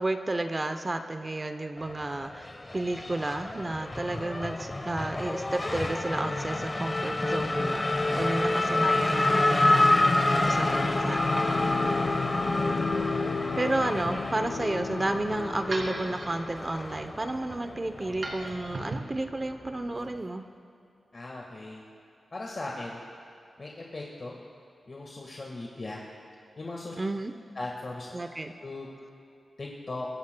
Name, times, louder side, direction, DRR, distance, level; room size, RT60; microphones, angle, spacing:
voice 1, 0.0-11.2 13.6-20.4 27.0-27.3 28.1-28.5, right 2 dB, 30° right, 8 dB, 0.7 m, -32 dB
Race car auto racing / Accelerating revving vroom, 1.8-18.8, left 2 dB, 25° left, 1.0 m, -28 dB
Bowed string instrument, 8.5-16.3, left 6 dB, 85° left, 0.4 m, -36 dB
sound 1, 9.6-20.2, right 2 dB, 55° right, 2.6 m, -44 dB
voice 2, 21.1-21.8 22.3-23.0 23.6-24.3 24.9-26.0 26.6-26.9 27.5-28.1 28.6-28.9 29.6-30.1, left 2 dB, 45° left, -2 dB, 1.6 m, -38 dB
24.5 x 14.0 x 2.3 m, 2.6 s
wide cardioid pair, 80°, 0 cm